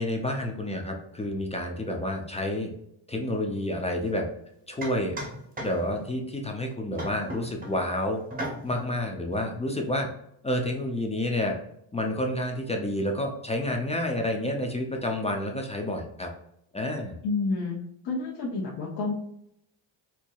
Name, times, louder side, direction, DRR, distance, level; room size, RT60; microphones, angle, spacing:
voice 1, 0.0-2.7 3.1-4.3 4.7-5.2 5.6-8.2 8.6-10.1 10.4-11.6 11.9-16.3 16.7-17.2, left 1 dB, 15° left, 2 dB, 0.3 m, -29 dB
sound 1, 4.0-4.2 4.8-6.1 7.0-7.9 8.3-8.9, right 1 dB, 20° right, 0.7 m, -37 dB
voice 2, 17.2-17.8 18.0-19.1, left 3 dB, 55° left, -3 dB, 0.9 m, -29 dB
4.4 x 2.7 x 2.3 m, 0.75 s
cardioid pair, 165°, 49 cm